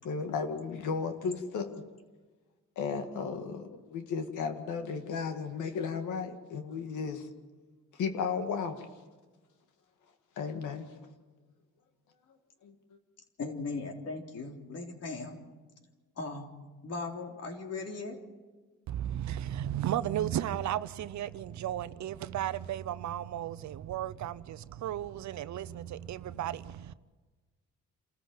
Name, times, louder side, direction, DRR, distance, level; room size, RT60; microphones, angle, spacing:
voice 1, 0.0-1.8 2.8-7.3 7.9-8.9 10.4-10.9 12.6-12.7, left 5 dB, 80° left, 2.1 m, -34 dB
voice 2, 13.4-15.4 16.2-16.5 16.8-18.2, left 3 dB, 55° left, 3.7 m, -38 dB
voice 3, 18.9-26.9, right 11 dB, 70° right, 0.8 m, -34 dB
27.5 x 14.5 x 7.8 m
cardioid pair, 90°, 30 cm